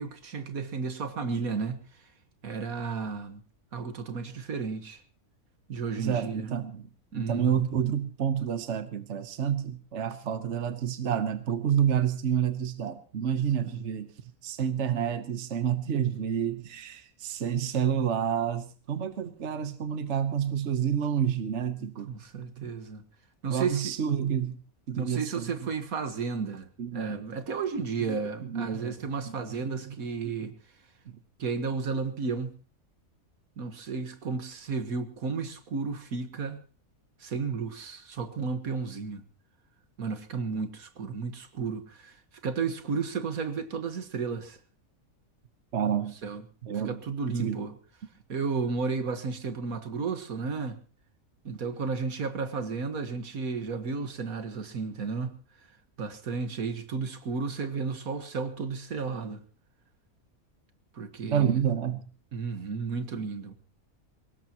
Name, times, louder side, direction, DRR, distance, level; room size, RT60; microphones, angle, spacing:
voice 1, 0.0-2.0 2.4-3.4 3.7-5.0 5.7-6.5 7.1-7.5 13.6-13.9 22.1-23.0 23.4-24.0 24.9-30.5 31.4-32.5 33.6-36.6 37.2-39.2 40.0-44.6 46.2-46.4 46.9-47.8 48.3-50.8 51.4-55.4 56.0-59.4 60.9-61.6 62.3-63.5, right 5 dB, 75° right, 1.9 m, -33 dB
voice 2, 5.9-22.1 22.6-22.7 23.5-24.6 24.9-25.5 26.8-27.2 28.0-28.9 29.2-30.0 30.4-30.5 31.0-31.2 45.7-46.1 46.6-47.0 47.4-47.6 61.2-62.1, right 8 dB, 55° right, 1.3 m, -29 dB
23.0 x 19.0 x 2.9 m
omnidirectional pair, 1.5 m